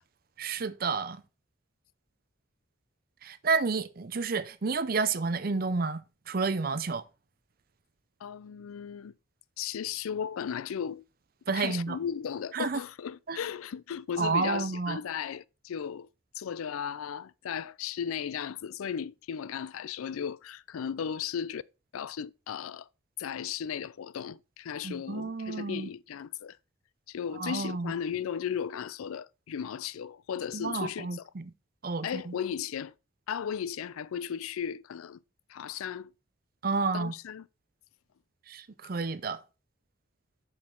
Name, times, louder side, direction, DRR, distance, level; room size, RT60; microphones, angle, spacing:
voice 1, 0.4-1.2 3.2-6.0 6.3-7.0 11.5-12.0 12.5-12.8 13.3-13.4 14.2-15.0 24.8-25.9 27.4-27.9 30.5-31.5 31.8-32.3 36.6-37.1 38.5-39.4, right 4 dB, 45° right, 0.5 m, -30 dB
voice 2, 8.2-9.1 9.6-11.0 11.5-16.1 16.3-21.6 21.9-22.9 23.2-26.6 27.1-31.3 32.0-32.9 33.3-35.2 35.5-36.1 36.9-37.5, left 8 dB, 85° left, 0.4 m, -36 dB
7.4 x 6.4 x 3.8 m
head